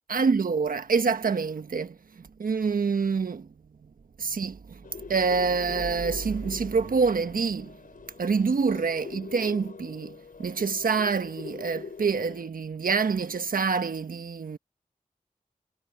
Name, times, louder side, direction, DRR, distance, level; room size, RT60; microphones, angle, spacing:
voice 1, 0.1-2.0 2.4-3.5 4.2-4.8 5.1-7.7 8.2-14.6, right 5 dB, 75° right, 1.4 m, -26 dB
sound 1, 4.8-12.5, left 5 dB, 75° left, 4.2 m, -44 dB
cardioid pair, 45°, 15 cm